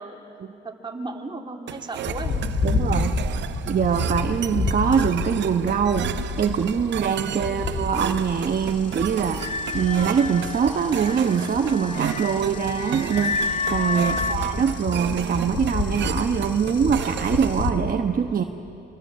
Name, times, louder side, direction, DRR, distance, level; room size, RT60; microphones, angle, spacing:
voice 1, 0.0-2.4 7.5-7.6 14.1-14.4, right 2 dB, 25° right, 1 dB, 2.9 m, -36 dB
sound 1, 1.7-17.7, right 12 dB, 65° right, 0.6 m, -33 dB
sound 2, 2.1-17.7, left 4 dB, 65° left, 2.7 m, -30 dB
voice 2, 2.6-3.2 3.7-18.4, right 7 dB, 45° right, 5 dB, 1.1 m, -23 dB
sound 3, 9.4-14.4, left 4 dB, 35° left, 1.1 m, -30 dB
25.0 x 25.0 x 7.5 m, 2.8 s
cardioid pair, 90°, 20 cm